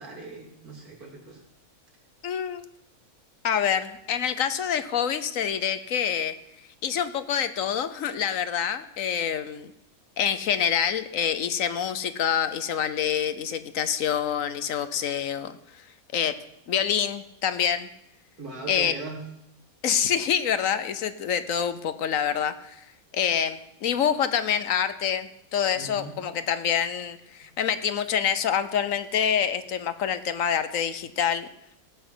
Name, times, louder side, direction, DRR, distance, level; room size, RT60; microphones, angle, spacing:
voice 1, 0.0-1.4 18.4-19.2 25.7-26.2, right 3 dB, 80° right, -1 dB, 3.5 m, -39 dB
voice 2, 2.2-2.7 3.4-6.3 6.8-9.7 10.2-15.6 16.1-16.3 16.7-17.9 18.7-18.9 19.8-22.8 23.1-31.5, left 8 dB, 65° left, 12 dB, 1.1 m, -26 dB
17.5 x 6.2 x 7.9 m, 0.79 s
omnidirectional pair, 1.6 m